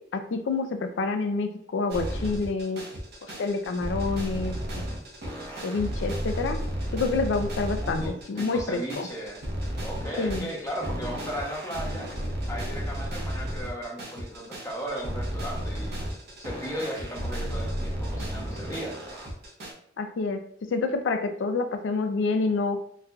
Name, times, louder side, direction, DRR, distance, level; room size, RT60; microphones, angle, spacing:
voice 1, 0.1-2.8 3.4-4.9 5.6-6.6 6.9-9.1 10.2-10.5 20.0-22.8, left 3 dB, 70° left, 7 dB, 0.4 m, -28 dB
sound 1, 1.9-19.7, equal, 60° right, 0.8 m, -33 dB
voice 2, 7.8-9.4 9.8-12.1 12.5-16.0 16.4-19.0, equal, 15° left, -3 dB, 0.8 m, -36 dB
4.2 x 2.4 x 2.3 m, 0.66 s
head